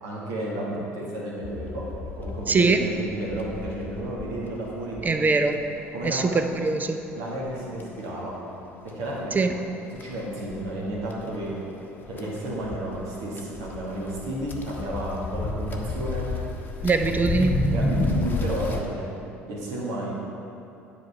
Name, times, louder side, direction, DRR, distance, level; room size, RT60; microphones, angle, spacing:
voice 1, 0.0-1.9 2.2-5.2 5.9-6.3 7.1-8.4 8.8-9.4 10.0-11.6 12.1-16.3 17.7-19.0 19.5-20.1, right 1 dB, 60° right, -4 dB, 2.0 m, -32 dB
sound 1, 1.4-18.8, left 2 dB, 25° left, 1.1 m, -33 dB
voice 2, 2.5-2.8 5.0-5.6 6.0-7.0 9.3-9.5 16.8-17.7, right 3 dB, 25° right, 7 dB, 0.6 m, -22 dB
10.5 x 4.8 x 5.8 m, 2.7 s
figure-of-eight pair, 60°, 7 cm